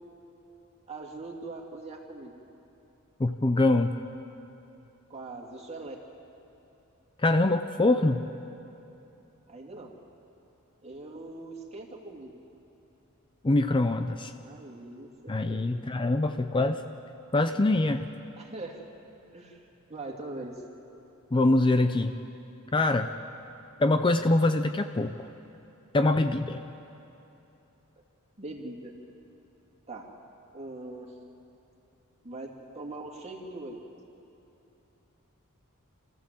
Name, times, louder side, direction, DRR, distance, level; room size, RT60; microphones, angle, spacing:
voice 1, 0.9-2.3 5.1-6.0 9.5-9.9 10.8-12.4 14.4-15.6 18.4-18.8 19.3-20.6 28.4-28.9 29.9-30.1 30.5-31.1 32.2-33.8, right 2 dB, 30° right, 0 dB, 2.5 m, -41 dB
voice 2, 3.2-4.0 7.2-8.2 13.4-14.3 15.3-16.8 17.3-18.1 21.3-22.2 22.7-23.1 23.8-25.3 25.9-26.6, left 2 dB, 25° left, 8 dB, 0.5 m, -24 dB
27.0 x 15.0 x 7.6 m, 2.9 s
head